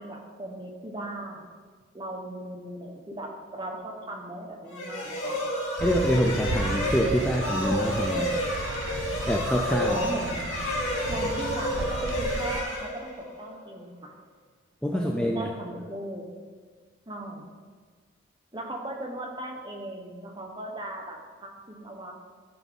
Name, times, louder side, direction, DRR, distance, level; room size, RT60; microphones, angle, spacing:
voice 1, 0.0-1.4 1.9-5.5 9.8-10.5 11.1-14.1 14.9-16.3 17.1-17.4 18.5-22.1, right 1 dB, 25° right, 1 dB, 1.1 m, -37 dB
sound 1, 4.7-13.5, left 1 dB, 90° left, 2.4 m, -30 dB
voice 2, 5.8-8.4 9.3-10.0 14.8-15.5, equal, 5° left, 1 dB, 0.4 m, -26 dB
sound 2, 5.8-12.6, right 3 dB, 80° right, 0.5 m, -34 dB
12.5 x 5.4 x 3.9 m, 1.6 s
head